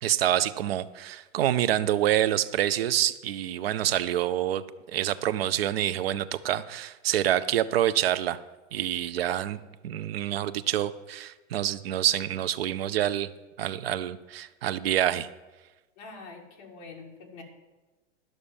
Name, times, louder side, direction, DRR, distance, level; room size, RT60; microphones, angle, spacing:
voice 1, 0.0-4.6 4.9-8.4 8.7-13.3 13.6-15.3, right 12 dB, 55° right, 15 dB, 0.6 m, -27 dB
voice 2, 16.0-17.4, left 3 dB, 35° left, 0 dB, 2.0 m, -45 dB
11.5 x 6.4 x 7.0 m, 1.1 s
supercardioid pair, 175°, 36 cm